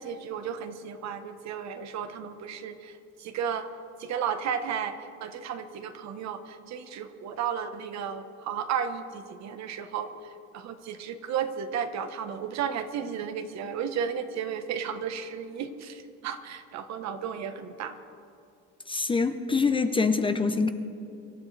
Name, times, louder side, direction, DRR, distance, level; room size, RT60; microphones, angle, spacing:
voice 1, 0.0-3.7 4.0-18.0 20.1-20.4, right 7 dB, 60° right, 9 dB, 1.2 m, -34 dB
voice 2, 18.9-20.7, left 4 dB, 15° left, 8 dB, 0.6 m, -25 dB
25.5 x 13.5 x 3.3 m, 2.7 s
cardioid pair, 135°, 31 cm